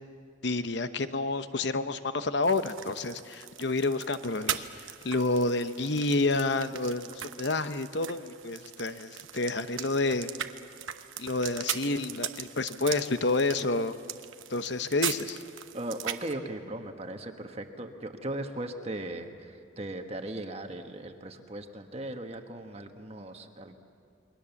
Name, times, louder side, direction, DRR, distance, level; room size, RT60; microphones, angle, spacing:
voice 1, 0.4-4.7 5.0-10.3 11.2-13.9 14.5-15.4, left 2 dB, 60° left, 11 dB, 0.9 m, -29 dB
sound 1, 2.4-16.3, right 10 dB, 80° right, 1.0 m, -40 dB
voice 2, 15.7-23.8, right 1 dB, 30° right, 5 dB, 1.4 m, -38 dB
29.0 x 22.5 x 7.2 m, 2.3 s
head